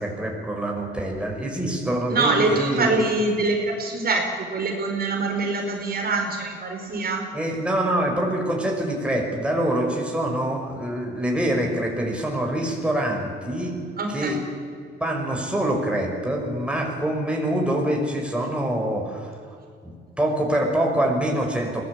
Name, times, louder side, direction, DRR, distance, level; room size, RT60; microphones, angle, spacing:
voice 1, 0.0-3.0 7.3-13.7 14.1-14.4 15.0-19.3 19.8-21.8, right 1 dB, 5° right, 0 dB, 5.9 m, -25 dB
voice 2, 2.1-7.2 14.0-14.3, right 3 dB, 50° right, 2 dB, 4.5 m, -24 dB
23.0 x 17.5 x 8.7 m, 2.3 s
cardioid pair, 90°, 20 cm